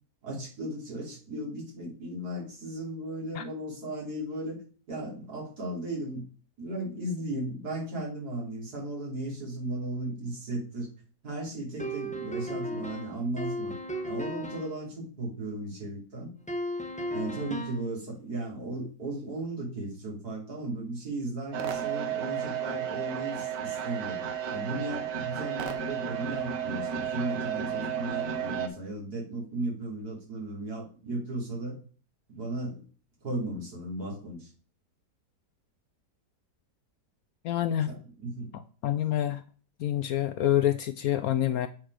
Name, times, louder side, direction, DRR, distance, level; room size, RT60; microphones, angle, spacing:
voice 1, 0.2-4.6 4.9-6.2 6.6-10.9 11.2-13.7 14.0-16.3 17.1-24.2 24.5-31.8 32.3-32.8 33.2-34.5 37.9-38.5, right 2 dB, 65° right, -3 dB, 3.6 m, -36 dB
sound 1, 11.8-14.8 16.5-17.9, equal, 5° left, 0.6 m, -35 dB
sound 2, 21.5-28.7, right 8 dB, 85° right, 1.7 m, -33 dB
voice 2, 37.4-37.9 38.5-39.4 39.8-41.7, left 12 dB, 70° left, 11 dB, 0.9 m, -27 dB
8.6 x 4.6 x 4.8 m, 0.39 s
omnidirectional pair, 1.8 m